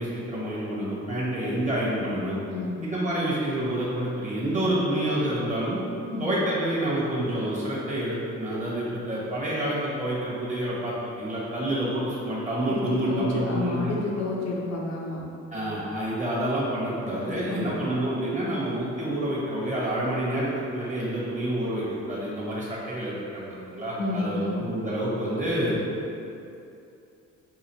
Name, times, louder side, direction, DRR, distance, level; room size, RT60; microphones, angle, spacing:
voice 1, 0.0-2.4 2.8-5.8 6.2-13.9 15.5-25.8, right 1 dB, 25° right, -7 dB, 1.2 m, -28 dB
voice 2, 2.5-2.8 6.0-6.3 12.7-12.8 13.1-15.2 17.5-18.0 24.0-24.6, left 3 dB, 60° left, -4 dB, 0.8 m, -30 dB
4.9 x 2.4 x 3.0 m, 2.7 s
cardioid pair, 90°, 30 cm